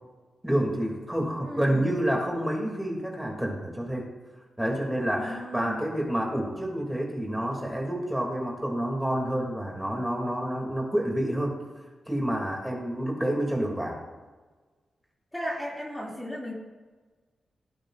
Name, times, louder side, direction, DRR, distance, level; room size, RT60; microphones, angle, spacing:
voice 1, 0.4-4.1 4.6-11.6 12.1-14.0, right 1 dB, 5° right, -1 dB, 3.0 m, -28 dB
voice 2, 1.4-1.9 5.1-5.8 15.3-16.5, equal, 10° left, -4 dB, 2.9 m, -35 dB
18.0 x 9.1 x 2.7 m, 1.3 s
cardioid pair, 70°, 0 cm